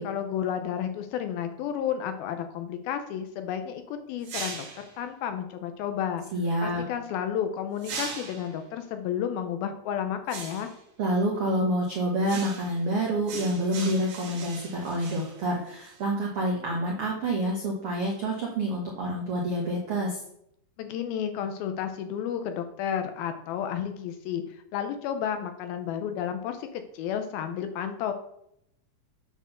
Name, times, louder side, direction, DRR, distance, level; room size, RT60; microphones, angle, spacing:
voice 1, 0.0-6.2 6.6-10.7 20.8-28.1, left 9 dB, 80° left, 7 dB, 2.3 m, -32 dB
sound 1, 4.2-4.9 7.8-8.6 10.3-10.8 12.2-12.8 13.3-16.0, right 5 dB, 60° right, 3.1 m, -39 dB
voice 2, 6.3-6.8 11.0-20.2, right 1 dB, 85° right, -2 dB, 1.2 m, -28 dB
9.0 x 4.5 x 6.5 m, 0.74 s
omnidirectional pair, 4.7 m